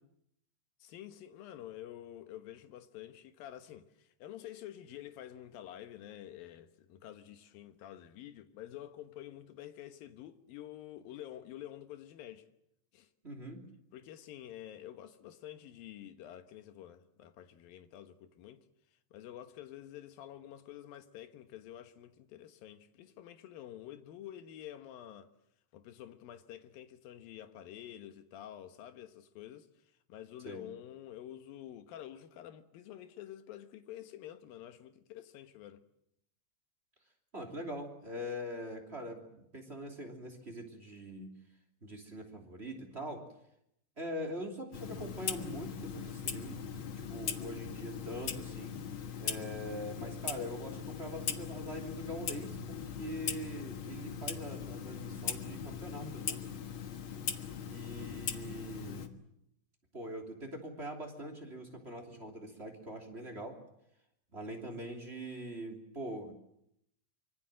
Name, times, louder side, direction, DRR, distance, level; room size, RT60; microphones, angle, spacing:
voice 1, 0.8-12.5 12.9-13.1 13.9-18.6 19.1-25.3 25.7-29.7 30.1-35.8, left 12 dB, 80° left, 3.1 m, -49 dB
voice 2, 13.2-13.6 30.4-30.6 37.3-41.3 41.8-43.3 44.0-46.6 47.1-48.7 49.2-56.4 57.7-59.1 59.9-63.6 64.3-66.3, equal, 20° right, 2.9 m, -43 dB
Clock, 44.7-59.1, left 7 dB, 50° left, 1.7 m, -40 dB
25.0 x 24.5 x 7.6 m
omnidirectional pair, 4.1 m